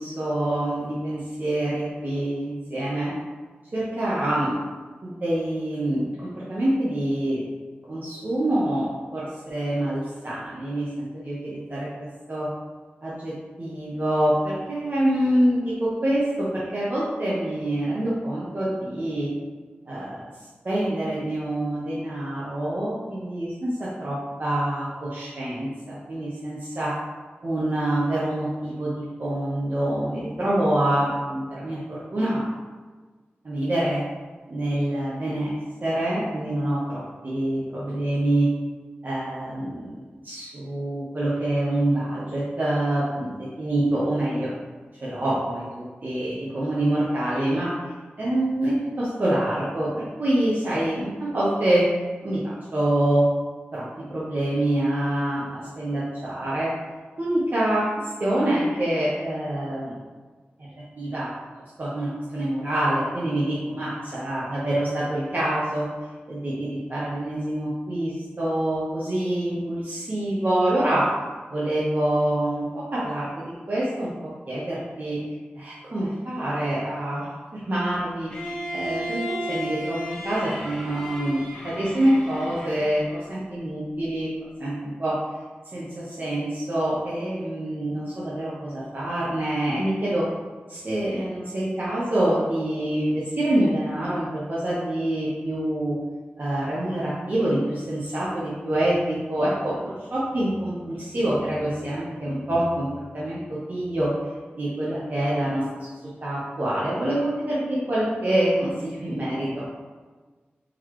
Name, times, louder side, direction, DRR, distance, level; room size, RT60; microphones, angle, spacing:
voice 1, 0.0-3.1 3.7-4.5 5.0-7.5 7.9-11.9 12.3-12.5 13.0-13.3 13.6-19.3 19.9-20.3 20.6-26.9 27.4-32.4 33.4-34.0 34.5-35.5 35.8-38.5 39.0-39.9 40.2-44.5 45.0-47.7 48.2-49.9 50.2-51.9 52.2-53.2 53.7-56.7 57.2-59.9 61.0-61.3 61.8-65.9 66.3-71.1 71.5-75.2 75.5-84.3 84.6-85.2 85.7-90.3 90.7-96.0 96.4-104.1 104.6-105.9 106.2-109.6, right 1 dB, 50° right, -8 dB, 0.8 m, -26 dB
Bowed string instrument, 78.3-83.2, equal, 10° left, 0.9 m, -34 dB
3.9 x 3.0 x 3.0 m, 1.4 s
wide cardioid pair, 100°, 4 cm